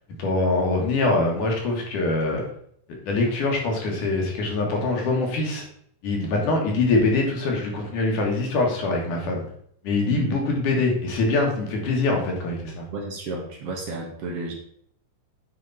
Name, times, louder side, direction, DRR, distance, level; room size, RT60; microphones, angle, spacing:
voice 1, 0.2-2.4 3.1-5.6 6.0-9.4 9.8-12.8, left 2 dB, 65° left, 0 dB, 3.2 m, -23 dB
voice 2, 10.1-10.5 12.9-14.5, right 3 dB, 60° right, 1 dB, 1.7 m, -32 dB
9.3 x 5.6 x 4.1 m, 0.66 s
omnidirectional pair, 4.0 m